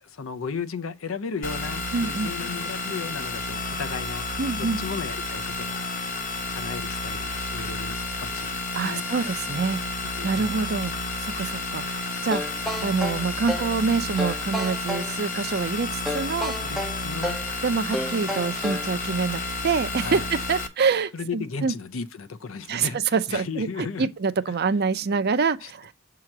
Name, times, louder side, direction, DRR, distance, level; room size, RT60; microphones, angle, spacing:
voice 1, 0.0-5.9 6.5-9.1 10.2-10.5 16.6-17.4 20.0-20.3 21.1-23.0 23.3-24.1 24.5-24.6 25.6-25.7, left 5 dB, 80° left, 0.6 m, -35 dB
sound 1, 1.4-20.7, left 2 dB, 40° left, 1.0 m, -31 dB
voice 2, 1.9-2.3 4.4-4.8 8.7-9.8 10.2-10.9 11.2-12.4 12.8-16.5 17.6-21.7 22.7-25.9, right 5 dB, 55° right, 0.5 m, -26 dB
sound 2, 12.3-13.8 14.2-15.1 16.1-17.5 17.9-18.9, left 1 dB, ahead, 0.5 m, -31 dB
7.6 x 2.9 x 5.9 m
head